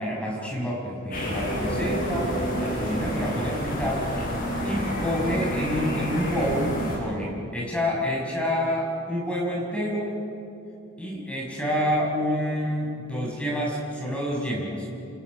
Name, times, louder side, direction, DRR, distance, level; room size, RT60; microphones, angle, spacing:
voice 1, 0.0-4.1 4.6-10.3 11.0-14.9, equal, 5° left, -3 dB, 6.0 m, -28 dB
sound 1, 1.1-7.0, equal, 40° left, 7.5 m, -29 dB
28.5 x 27.5 x 6.4 m, 2.8 s
head